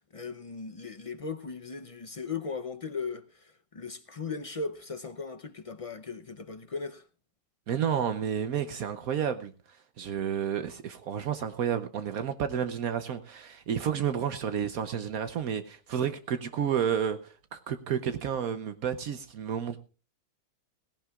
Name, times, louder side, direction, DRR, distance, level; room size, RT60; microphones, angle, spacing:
voice 1, 0.0-7.0, left 4 dB, 50° left, 0.4 m, -38 dB
voice 2, 7.7-9.5 10.0-19.8, right 8 dB, 70° right, 1.2 m, -31 dB
18.0 x 16.0 x 2.3 m
omnidirectional pair, 1.6 m